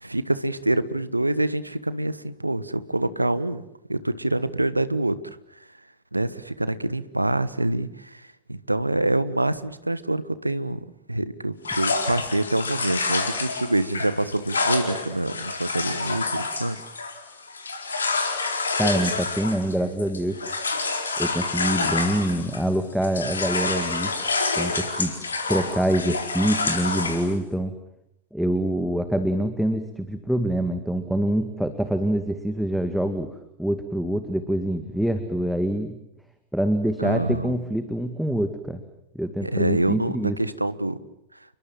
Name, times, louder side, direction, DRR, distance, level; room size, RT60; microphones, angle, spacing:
voice 1, 0.0-3.6 3.9-5.2 6.1-8.2 8.5-10.8 11.1-16.8 37.0-37.5 39.4-41.0, right 1 dB, 85° right, 16 dB, 1.3 m, -26 dB
sound 1, 11.6-22.7 23.0-27.3, left 3 dB, 75° left, 4.2 m, -28 dB
voice 2, 18.8-20.4 21.2-24.1 24.5-25.2 25.5-27.8 28.3-33.3 33.6-36.0 36.5-38.8 39.1-40.4, right 1 dB, ahead, 8 dB, 2.1 m, -25 dB
29.5 x 23.0 x 7.5 m, 0.80 s
figure-of-eight pair, 90°, 0 cm